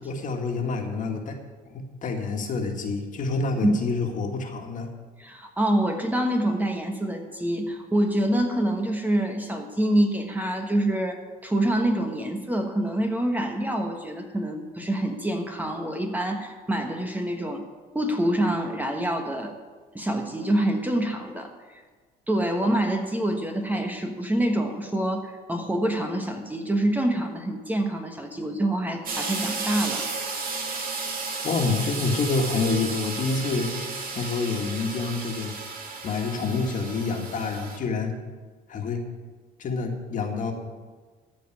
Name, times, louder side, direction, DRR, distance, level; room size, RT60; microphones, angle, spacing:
voice 1, 0.0-1.4 1.7-4.9 31.4-33.7 34.0-35.5 36.0-38.1 38.7-39.0 39.6-40.5, left 4 dB, 50° left, 3 dB, 1.9 m, -27 dB
voice 2, 5.2-17.6 17.9-19.5 19.9-21.5 22.3-30.0 30.4-30.5, right 1 dB, 10° right, 4 dB, 1.3 m, -26 dB
sound 1, 29.0-37.8, right 4 dB, 60° right, 2.3 m, -33 dB
14.0 x 5.2 x 9.2 m, 1.4 s
cardioid pair, 110°, 17 cm